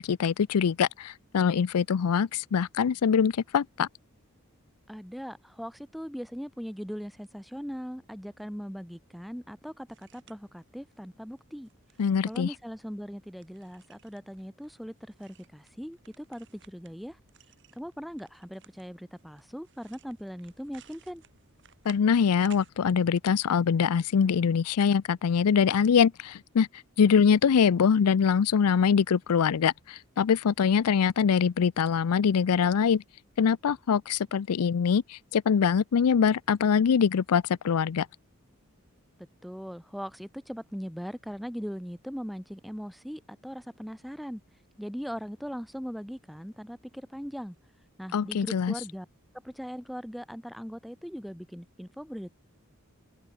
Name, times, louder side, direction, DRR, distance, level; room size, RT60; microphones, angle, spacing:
voice 1, 0.0-3.9 12.0-12.5 21.9-26.7 27.0-33.0 33.4-38.1 48.1-48.7, left 6 dB, 90° left, 0.4 m, -23 dB
voice 2, 4.9-11.7 12.3-14.9 15.2-17.2 17.8-21.2 39.4-44.4 44.8-47.6 48.0-49.1 49.4-52.3, equal, ahead, 0.9 m, -39 dB
sound 1, 9.9-22.7, right 8 dB, 55° right, 3.7 m, -58 dB
head